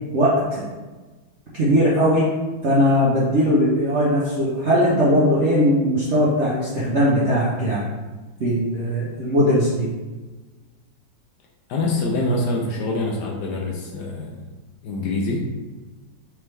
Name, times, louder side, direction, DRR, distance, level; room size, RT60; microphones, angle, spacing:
voice 1, 0.1-0.7 1.5-2.3 2.6-7.9 8.4-9.9, equal, 60° right, -7 dB, 0.7 m, -19 dB
voice 2, 11.7-14.4 14.8-15.5, left 2 dB, 70° left, 0 dB, 1.1 m, -25 dB
3.4 x 3.4 x 3.2 m, 1.3 s
omnidirectional pair, 2.1 m